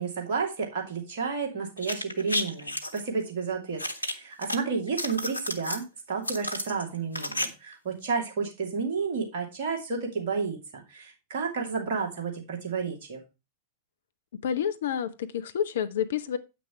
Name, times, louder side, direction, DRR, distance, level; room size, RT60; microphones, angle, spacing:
voice 1, 0.0-13.2, right 5 dB, 55° right, 1 dB, 2.9 m, -31 dB
sound 1, 1.8-3.0 3.8-4.6 4.9-5.8 6.2-7.5 7.7-7.8, left 1 dB, 90° right, 1.0 m, -32 dB
voice 2, 14.4-16.4, left 9 dB, 60° left, 12 dB, 0.8 m, -29 dB
8.5 x 6.1 x 4.6 m, 0.27 s
figure-of-eight pair, 90°, 0 cm